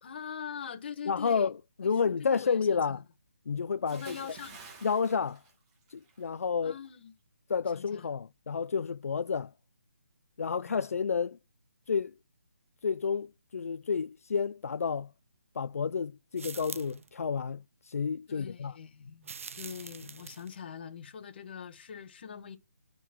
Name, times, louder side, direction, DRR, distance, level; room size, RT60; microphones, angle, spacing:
voice 1, 0.0-1.5 2.0-3.0 3.9-4.6 6.6-7.1 7.7-8.1 10.6-10.8 18.3-19.3 19.5-22.6, left 7 dB, 40° left, 1.3 m, -43 dB
voice 2, 1.1-1.5 1.8-3.0 3.5-4.2 4.8-5.4 5.9-6.7 7.5-9.5 10.4-11.4 11.9-12.1 12.8-15.1 15.6-18.7, left 6 dB, 70° left, 0.4 m, -30 dB
Bathtub (filling or washing) / Splash splatter, 3.9-6.3 6.6-6.9, right 4 dB, 20° right, 1.8 m, -51 dB
sound 1, 16.4-17.1 19.2-20.6, right 5 dB, 60° right, 0.6 m, -44 dB
9.1 x 4.1 x 4.4 m
hypercardioid pair, 160°, 8 cm